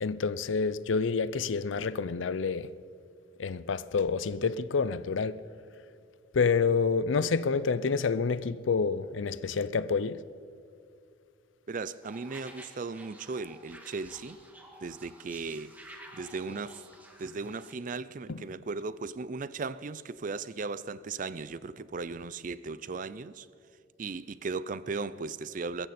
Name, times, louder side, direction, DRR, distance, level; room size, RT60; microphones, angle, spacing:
voice 1, 0.0-2.7 3.4-5.4 6.3-10.2 18.3-18.4, left 5 dB, 90° left, 0.5 m, -28 dB
voice 2, 11.7-14.4 14.8-15.7 16.1-16.8 17.2-23.5 24.0-25.9, right 4 dB, 45° right, 0.4 m, -37 dB
sound 1, 12.0-17.7, right 1 dB, 10° right, 1.6 m, -52 dB
22.0 x 14.5 x 4.3 m
head